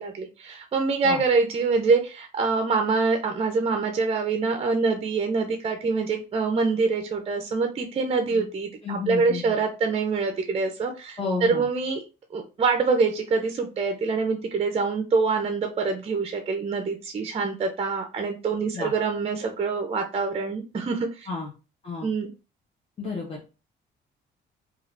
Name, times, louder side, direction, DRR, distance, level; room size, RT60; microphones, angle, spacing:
voice 1, 0.0-12.0 12.3-21.3 22.0-22.3, right 4 dB, 30° right, 5 dB, 0.4 m, -25 dB
voice 2, 8.8-9.6 11.2-11.7 18.7-18.9 21.3-21.5 21.8-22.1 23.0-23.4, left 3 dB, 30° left, -2 dB, 0.8 m, -31 dB
3.1 x 2.4 x 2.5 m, 0.31 s
cardioid pair, 90°, 20 cm